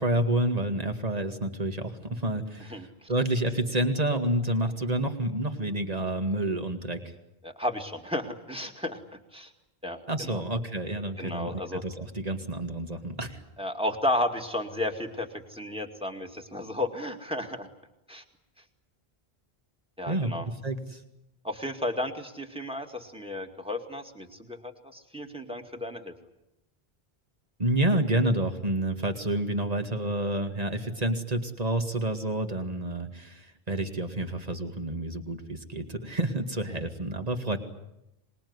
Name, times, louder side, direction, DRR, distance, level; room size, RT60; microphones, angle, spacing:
voice 1, 0.0-2.8 3.1-7.0 10.1-13.4 20.1-21.0 27.6-37.6, right 1 dB, 40° right, 6 dB, 2.2 m, -29 dB
voice 2, 2.7-3.1 7.4-9.0 9.3-9.5 9.8-10.4 11.2-11.8 13.6-17.7 18.1-18.2 20.0-20.5 21.4-26.1, left 1 dB, 5° right, 4 dB, 2.2 m, -33 dB
25.5 x 20.5 x 9.7 m, 0.88 s
omnidirectional pair, 1.0 m